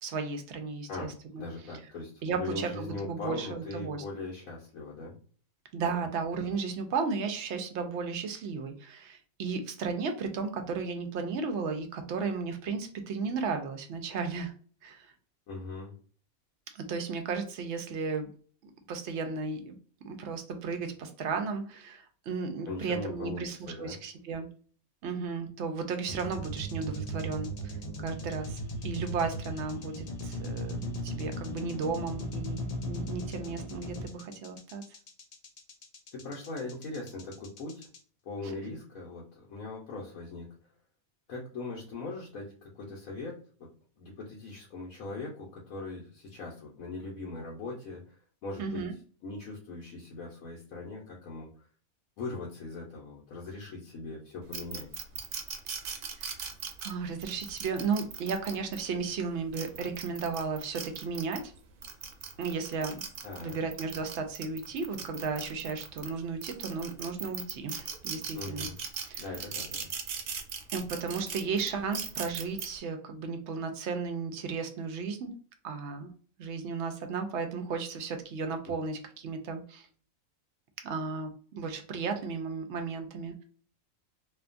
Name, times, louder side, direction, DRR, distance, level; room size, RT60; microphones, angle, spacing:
voice 1, 0.0-1.1 1.3-1.4 2.2-4.0 5.7-14.5 14.8-15.1 16.7-18.3 18.6-19.8 20.0-24.5 25.0-27.7 28.0-34.8 48.6-48.9 55.9-56.3 56.8-61.5 62.4-63.0 63.4-68.7 69.1-69.2 70.7-75.3 75.6-76.1 76.4-79.9 80.8-83.4, right 5 dB, 65° right, 6 dB, 0.8 m, -34 dB
voice 2, 0.9-5.2 5.8-6.0 15.5-15.9 22.7-24.0 36.1-37.9 38.2-40.5 41.3-43.7 44.0-48.9 49.2-51.5 52.2-54.9 63.2-63.6 68.3-68.8 69.2-69.9 78.7-78.8, left 3 dB, 85° left, -4 dB, 1.2 m, -40 dB
sound 1, 26.1-38.0, equal, 65° left, 0.4 m, -37 dB
sound 2, 54.5-58.8 59.4-61.4 61.8-66.1 66.4-72.7, right 7 dB, 85° right, 1.0 m, -38 dB
2.8 x 2.3 x 2.4 m, 0.43 s
omnidirectional pair, 1.4 m